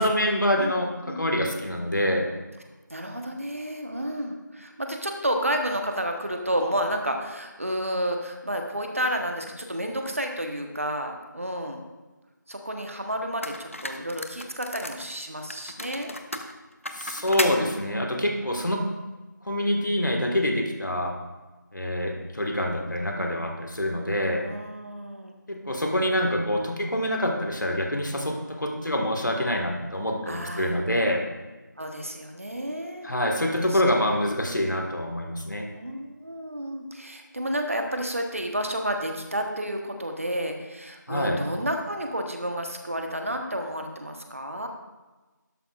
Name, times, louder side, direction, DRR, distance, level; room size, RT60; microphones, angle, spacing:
voice 1, 0.0-0.9 1.1-2.3 16.9-18.8 19.4-21.1 21.7-24.4 25.5-31.2 33.0-35.7 41.1-41.4, left 1 dB, 70° left, 2 dB, 1.7 m, -26 dB
voice 2, 2.9-11.8 12.5-16.1 24.4-25.3 30.2-30.8 31.8-33.1 33.7-33.8 35.7-44.7, equal, 45° right, 3 dB, 1.2 m, -31 dB
sound 1, 12.8-12.9 13.4-15.1 15.5-17.6, left 1 dB, 45° left, 0.7 m, -34 dB
12.0 x 11.5 x 2.5 m, 1.2 s
figure-of-eight pair, 180°, 10 cm